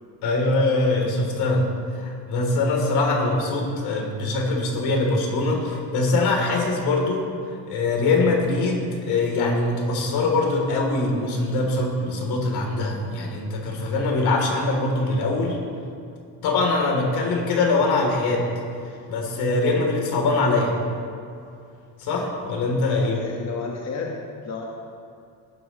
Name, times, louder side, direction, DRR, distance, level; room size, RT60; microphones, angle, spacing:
voice 1, 0.2-1.7 1.9-15.6 16.4-18.5 19.1-20.7 22.0-23.2, left 2 dB, 80° left, 0 dB, 3.1 m, -23 dB
voice 2, 22.9-24.6, left 5 dB, 45° left, -1 dB, 1.3 m, -32 dB
17.0 x 12.5 x 3.0 m, 2.5 s
cardioid pair, 140°, 37 cm